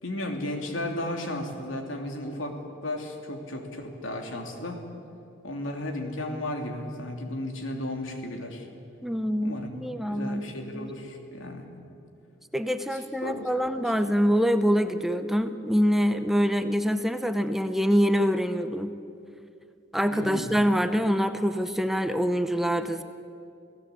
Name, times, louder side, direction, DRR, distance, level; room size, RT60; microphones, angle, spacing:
voice 1, 0.0-4.9 5.4-8.7 9.4-9.7 10.0-11.6 12.9-14.0 20.1-20.5, left 1 dB, 85° left, 3 dB, 3.1 m, -34 dB
voice 2, 9.0-10.5 10.7-10.9 12.5-18.9 19.9-23.0, equal, ahead, 9 dB, 0.7 m, -25 dB
28.5 x 17.0 x 8.3 m, 2.6 s
head